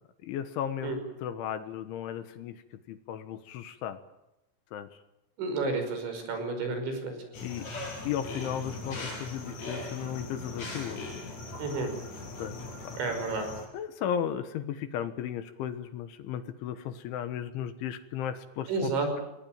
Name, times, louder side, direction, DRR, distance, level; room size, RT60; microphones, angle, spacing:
voice 1, 0.2-0.9 1.2-2.6 2.9-4.0 4.7-4.9 7.4-7.7 8.1-11.0 12.4-12.6 12.9-13.0 13.7-18.9, left 9 dB, 70° left, 10 dB, 3.5 m, -35 dB
voice 2, 5.4-7.1 11.6-11.9 13.0-13.5 18.7-19.2, right 3 dB, 60° right, 6 dB, 7.6 m, -31 dB
sound 1, 7.3-13.7, left 2 dB, 35° left, 7.5 m, -40 dB
28.5 x 21.0 x 9.0 m, 0.91 s
omnidirectional pair, 6.0 m